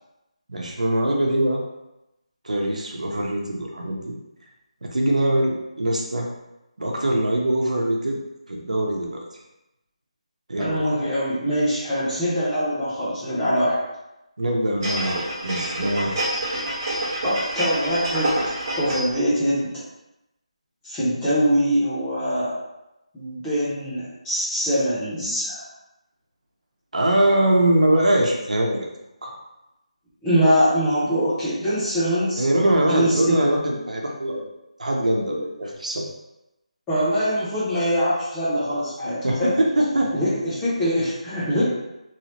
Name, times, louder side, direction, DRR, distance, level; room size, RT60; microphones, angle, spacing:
voice 1, 0.5-1.6 2.4-4.1 4.8-6.3 6.8-8.2 8.5-9.2 10.5-10.9 14.4-16.2 26.9-28.9 29.2-29.3 32.3-34.5 34.8-36.1 39.2-40.1, right 1 dB, 85° right, 0 dB, 0.8 m, -22 dB
voice 2, 10.6-13.8 17.2-18.4 18.8-19.7 20.8-22.5 23.1-25.6 30.2-32.4 32.9-33.4 36.9-39.5 40.1-41.6, equal, 5° left, -12 dB, 0.6 m, -23 dB
sound 1, 14.8-19.2 19.6-19.7, right 1 dB, 30° right, 0.9 m, -27 dB
3.2 x 2.8 x 2.9 m, 0.92 s
figure-of-eight pair, 175°, 4 cm